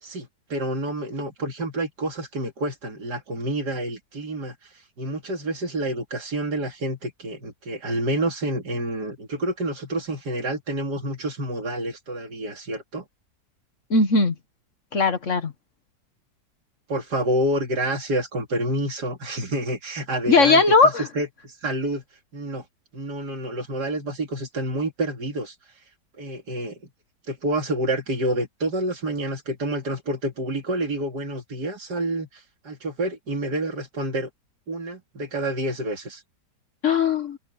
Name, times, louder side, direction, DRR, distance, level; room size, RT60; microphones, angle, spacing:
voice 1, 0.0-4.5 5.0-13.0 16.9-22.0 22.3-22.6 22.9-25.5 26.2-26.8 27.3-34.3 34.7-36.2, right 1 dB, 70° right, 3.4 m, -28 dB
voice 2, 13.9-14.3 14.9-15.5 20.3-21.1 36.8-37.4, left 3 dB, 45° left, 1.7 m, -18 dB
omnidirectional pair, 1.8 m